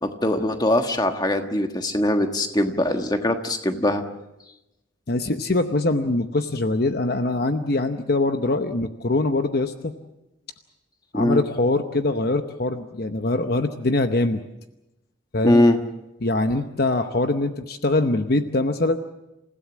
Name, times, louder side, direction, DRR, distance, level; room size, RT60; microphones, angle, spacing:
voice 1, 0.0-4.0 11.1-11.4 15.4-15.8, left 1 dB, 20° left, 6 dB, 1.4 m, -21 dB
voice 2, 5.1-9.9 11.1-14.4 15.3-15.6 16.2-19.0, left 2 dB, 50° left, 8 dB, 0.9 m, -23 dB
28.0 x 16.0 x 7.3 m, 0.95 s
head